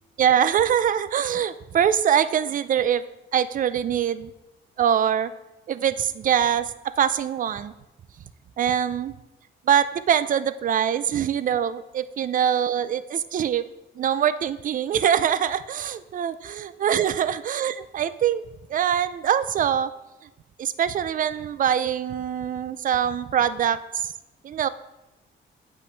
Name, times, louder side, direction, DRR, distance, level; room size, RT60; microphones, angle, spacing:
voice 1, 0.2-3.0 3.3-4.3 4.8-5.3 5.7-7.7 8.6-9.1 9.7-13.7 14.0-18.4 18.7-19.9 20.6-24.1 24.4-24.7, right 9 dB, 45° right, 14 dB, 0.4 m, -23 dB
8.2 x 5.4 x 3.3 m, 0.96 s
cardioid pair, 90°, 20 cm